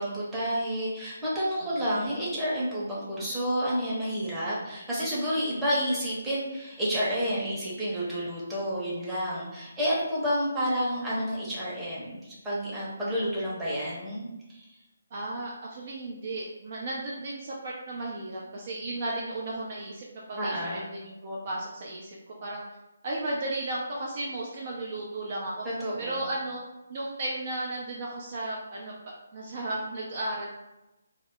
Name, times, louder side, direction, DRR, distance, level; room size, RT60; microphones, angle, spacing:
voice 1, 0.0-14.7 20.4-20.8 25.6-26.2, equal, 5° right, -9 dB, 0.8 m, -30 dB
voice 2, 15.1-22.6 23.0-25.7 26.0-26.6 26.9-28.9 29.3-30.5, right 2 dB, 35° right, -3 dB, 0.4 m, -34 dB
2.1 x 2.0 x 3.6 m, 1.0 s
figure-of-eight pair, 145°, 0 cm